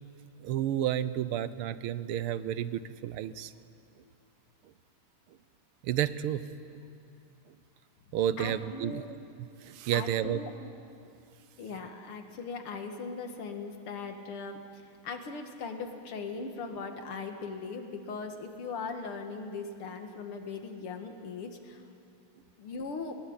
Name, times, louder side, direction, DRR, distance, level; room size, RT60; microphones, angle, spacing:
voice 1, 0.4-3.5 5.8-6.4 8.1-9.0 9.6-10.4, right 11 dB, 80° right, 14 dB, 1.7 m, -31 dB
voice 2, 8.4-9.1 9.9-10.5 11.6-21.8 22.6-23.1, left 4 dB, 75° left, 5 dB, 2.6 m, -39 dB
21.0 x 19.5 x 8.8 m, 2.5 s
omnidirectional pair, 2.4 m